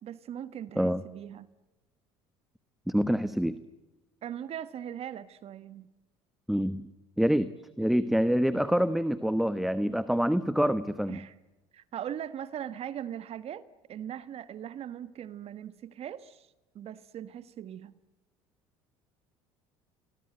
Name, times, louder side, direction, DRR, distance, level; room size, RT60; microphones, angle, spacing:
voice 1, 0.0-1.5 4.2-5.9 11.1-11.3 11.7-13.6 13.9-17.9, right 10 dB, 50° right, 15 dB, 1.3 m, -40 dB
voice 2, 2.9-3.6 6.5-6.9 7.2-7.5 7.8-11.2, equal, ahead, 14 dB, 1.1 m, -26 dB
27.5 x 21.5 x 9.0 m, 1.1 s
supercardioid pair, 85°, 13 cm